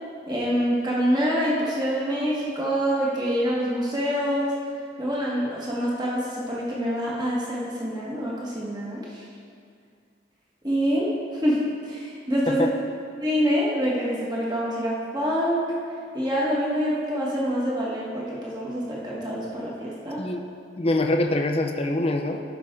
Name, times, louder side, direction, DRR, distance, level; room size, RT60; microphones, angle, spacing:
voice 1, 0.3-4.5 5.0-9.2 10.6-11.1 11.4-12.7 13.2-15.6 16.1-20.2, equal, 20° right, -6 dB, 1.6 m, -26 dB
voice 2, 20.8-22.4, left 1 dB, 30° left, 3 dB, 0.7 m, -24 dB
15.0 x 5.9 x 3.8 m, 2.3 s
head